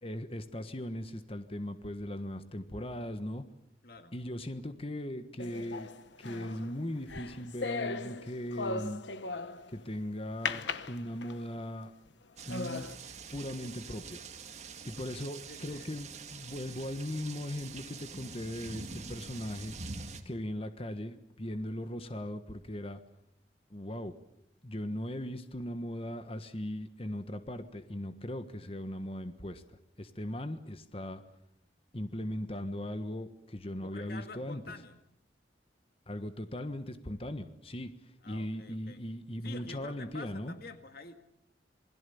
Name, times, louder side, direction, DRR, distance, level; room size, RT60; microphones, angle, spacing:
voice 1, 0.0-3.4 4.1-5.9 6.2-9.0 9.7-11.9 12.4-12.9 13.3-14.3 14.8-19.7 20.2-23.0 23.7-24.1 24.6-29.6 30.0-31.2 31.9-34.6 36.1-40.5, left 1 dB, 30° left, 9 dB, 1.4 m, -38 dB
voice 2, 3.8-4.1 15.5-15.9 33.8-35.0 38.2-39.0 39.4-41.1, left 3 dB, 55° left, 8 dB, 1.7 m, -48 dB
sound 1, 5.4-9.8 10.5-11.6 12.1-12.2 12.5-13.0, left 4 dB, 90° left, 1.2 m, -38 dB
sound 2, 12.4-20.2, right 4 dB, 40° right, 2.0 m, -45 dB
27.5 x 21.5 x 7.1 m, 0.77 s
head